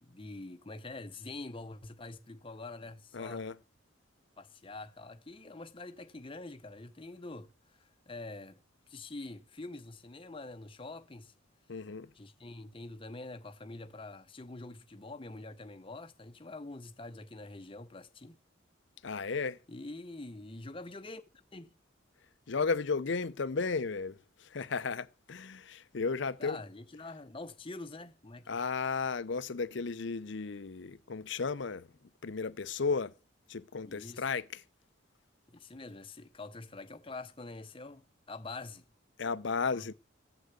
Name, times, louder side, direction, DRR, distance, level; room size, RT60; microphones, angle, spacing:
voice 1, 0.0-3.4 4.4-8.6 8.9-11.3 12.1-18.4 19.7-21.2 21.5-21.7 26.4-28.5 33.8-34.2 35.5-38.9 39.7-39.8, left 2 dB, 25° left, 0.8 m, -45 dB
voice 2, 3.1-3.6 11.7-12.1 19.0-19.6 22.5-26.6 28.5-31.9 32.2-33.1 33.5-34.6 39.2-39.9, left 4 dB, 60° left, 0.6 m, -34 dB
15.5 x 6.5 x 8.2 m
head